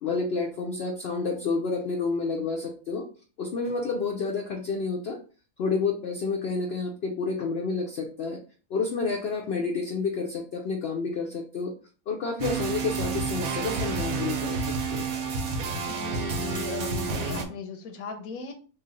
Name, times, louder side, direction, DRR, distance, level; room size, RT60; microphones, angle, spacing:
voice 1, 0.0-3.1 3.4-5.2 5.6-8.4 8.7-11.7 12.1-15.1, left 4 dB, 65° left, 2 dB, 0.6 m, -29 dB
sound 1, 12.4-17.5, right 4 dB, 90° right, 1.1 m, -30 dB
voice 2, 15.9-18.5, left 6 dB, 80° left, 6 dB, 1.1 m, -37 dB
3.1 x 2.4 x 3.7 m, 0.38 s
omnidirectional pair, 1.5 m